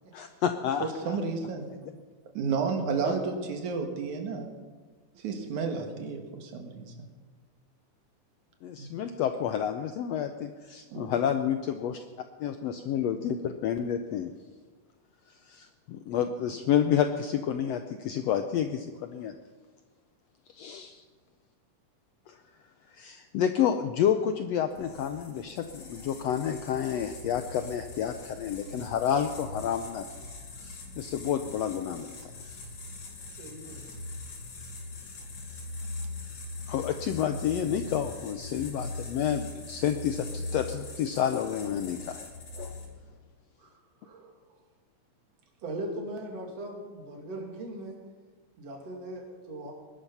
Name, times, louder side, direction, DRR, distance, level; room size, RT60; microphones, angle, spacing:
voice 1, 0.1-1.2 3.0-3.2 8.6-12.0 12.4-14.3 15.5-19.3 20.5-21.0 22.3-22.4 22.9-30.1 30.6-32.3 36.7-42.3 42.6-42.7, left 9 dB, 80° left, 8 dB, 1.5 m, -30 dB
voice 2, 0.8-1.7 2.3-4.5 5.1-7.1 8.8-8.9 10.9-11.2, right 5 dB, 70° right, 4 dB, 3.0 m, -32 dB
sound 1, 24.7-43.1, left 2 dB, 65° left, 4.1 m, -41 dB
voice 3, 33.4-33.8 43.6-44.3 45.6-47.9 48.6-49.7, right 1 dB, 50° right, 1 dB, 3.6 m, -39 dB
20.0 x 12.0 x 5.6 m, 1.4 s
omnidirectional pair, 3.7 m